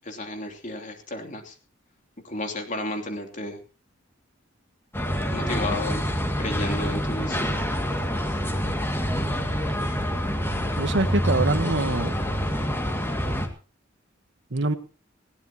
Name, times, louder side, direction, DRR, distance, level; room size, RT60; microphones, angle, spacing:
voice 1, 0.0-1.6 2.2-3.6 5.3-6.0 6.4-7.6, left 2 dB, 40° left, 5 dB, 3.0 m, -32 dB
sound 1, 4.9-13.5, equal, 10° left, 2.2 m, -26 dB
voice 2, 10.8-12.2 14.5-14.7, right 2 dB, 65° right, 10 dB, 1.4 m, -24 dB
20.5 x 17.5 x 3.0 m, 0.35 s
head